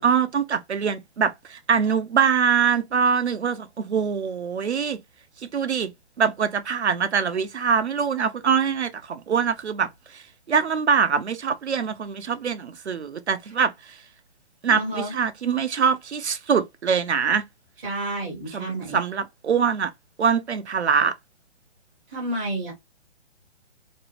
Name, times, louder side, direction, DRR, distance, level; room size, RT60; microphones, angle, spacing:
voice 1, 0.0-5.0 5.5-5.9 6.2-9.9 10.1-10.2 10.5-13.7 14.6-17.4 18.5-19.9 20.2-21.1, right 6 dB, 80° right, 0.5 m, -23 dB
voice 2, 14.7-15.1 17.8-19.0 22.1-22.7, right 1 dB, 10° right, 0.5 m, -30 dB
2.5 x 2.0 x 2.8 m
figure-of-eight pair, 130°, 33 cm